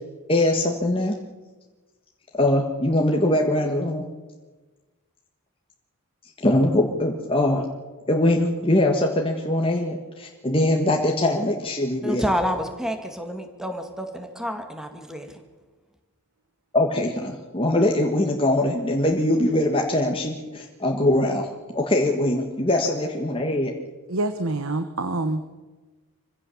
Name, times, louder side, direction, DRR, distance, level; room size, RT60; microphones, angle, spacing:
voice 1, 0.3-1.1 2.3-4.0 6.4-7.7 8.1-12.2 16.7-21.5 21.7-23.7, left 1 dB, 25° left, 1.5 m, -22 dB
voice 2, 12.0-15.4, equal, ahead, 2.0 m, -29 dB
voice 3, 24.1-25.4, right 2 dB, 65° right, 1.1 m, -26 dB
25.5 x 16.0 x 7.2 m
head